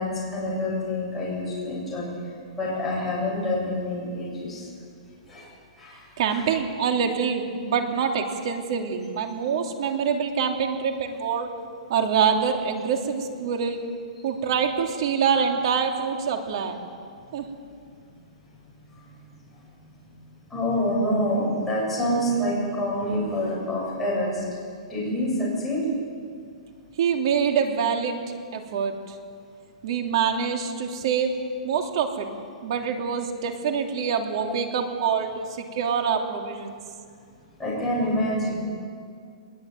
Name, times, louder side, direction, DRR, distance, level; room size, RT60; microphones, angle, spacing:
voice 1, 0.0-2.1 2.6-4.7 5.3-5.5 5.8-6.1 6.3-6.4 20.5-24.4 24.9-25.8 37.6-38.5, left 1 dB, 5° left, -7 dB, 7.6 m, -27 dB
voice 2, 6.2-11.5 11.9-13.8 14.2-16.8 17.3-17.5 27.0-28.2 28.5-29.1 29.8-31.3 31.6-32.3 32.6-36.8, right 6 dB, 45° right, 3 dB, 3.0 m, -25 dB
21.5 x 21.5 x 9.2 m, 2.2 s
hypercardioid pair, 170°, 4 cm